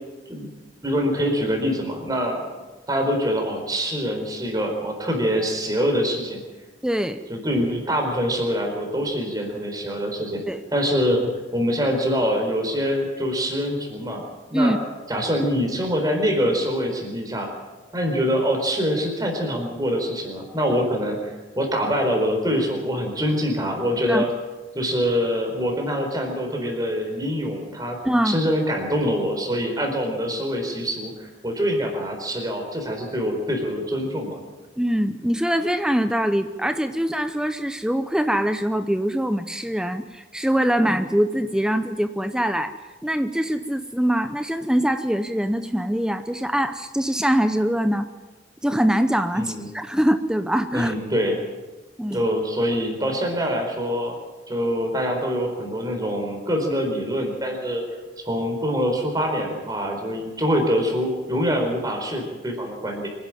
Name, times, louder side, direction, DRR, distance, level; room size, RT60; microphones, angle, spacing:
voice 1, 0.8-2.5 2.9-6.4 7.3-10.4 10.7-14.7 15.1-17.5 17.9-24.3 24.7-28.0 28.2-34.4 49.3-49.7 50.7-51.4 52.1-54.2 54.5-57.8 58.3-63.1, equal, 20° right, 2 dB, 4.4 m, -24 dB
voice 2, 6.8-7.2 10.5-10.6 14.5-14.8 24.1-24.3 28.0-28.4 34.8-42.7 43.0-48.1 48.6-50.9 52.0-52.2, equal, 5° right, 9 dB, 0.6 m, -23 dB
25.0 x 11.5 x 9.0 m, 1.2 s
head